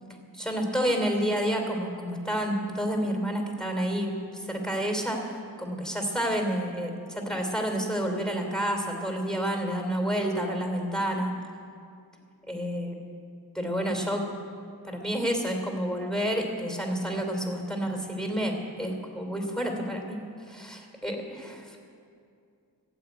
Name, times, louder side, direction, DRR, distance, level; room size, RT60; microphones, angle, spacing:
voice 1, 0.3-11.3 12.5-13.0 13.5-14.3 14.8-20.2 20.5-21.8, equal, ahead, 3 dB, 3.0 m, -29 dB
15.0 x 7.8 x 9.3 m, 2.4 s
wide cardioid pair, 55°, 40 cm